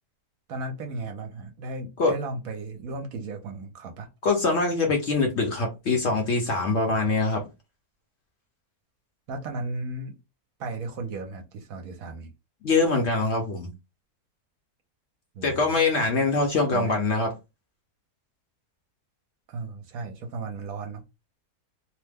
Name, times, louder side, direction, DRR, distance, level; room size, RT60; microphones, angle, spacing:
voice 1, 0.5-4.1 9.3-10.2 10.6-12.3 15.3-15.8 16.7-17.0 19.5-21.0, right 3 dB, 70° right, 1.0 m, -35 dB
voice 2, 4.2-7.4 12.6-13.7 15.4-17.3, left 3 dB, 55° left, 0.9 m, -23 dB
2.9 x 2.1 x 3.4 m
omnidirectional pair, 1.7 m